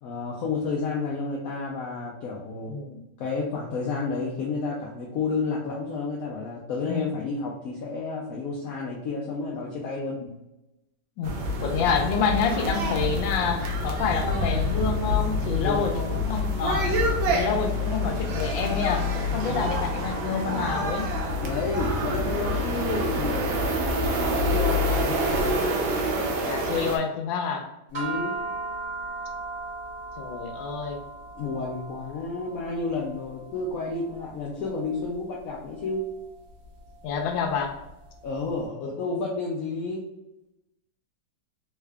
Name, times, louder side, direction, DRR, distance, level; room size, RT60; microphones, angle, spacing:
voice 1, 0.0-2.7 3.2-10.2 15.6-16.2 21.4-23.8 24.2-25.6 27.9-28.3 31.4-36.0 38.2-40.0, left 3 dB, 70° left, -2 dB, 0.8 m, -31 dB
voice 2, 2.7-3.0 6.9-7.1 10.0-10.2 11.2-11.3 11.6-17.0 17.3-21.1 24.9-25.0 26.4-27.7 30.2-31.0 37.0-37.7 38.8-38.9, left 6 dB, 85° left, 4 dB, 1.3 m, -28 dB
sound 1, 11.2-27.0, left 1 dB, 80° right, 1.4 m, -27 dB
sound 2, 27.9-38.4, right 3 dB, 30° right, 1.0 m, -38 dB
3.6 x 2.4 x 3.2 m, 0.93 s
omnidirectional pair, 2.0 m